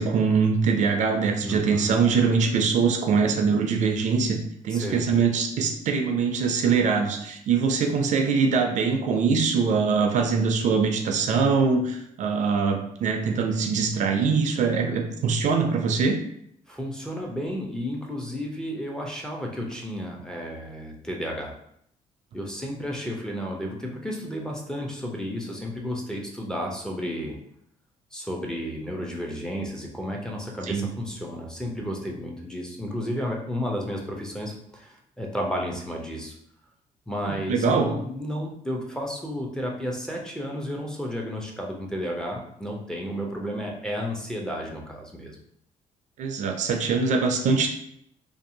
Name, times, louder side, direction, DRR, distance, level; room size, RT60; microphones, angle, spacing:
voice 1, 0.0-16.2 30.7-30.9 37.2-37.9 46.2-47.7, right 5 dB, 60° right, 4 dB, 0.4 m, -23 dB
voice 2, 1.4-1.9 4.7-5.1 16.7-21.5 22.3-27.4 28.1-36.4 37.1-45.4, equal, 5° left, -1 dB, 0.5 m, -32 dB
2.6 x 2.3 x 2.6 m, 0.72 s
cardioid pair, 105°, 14 cm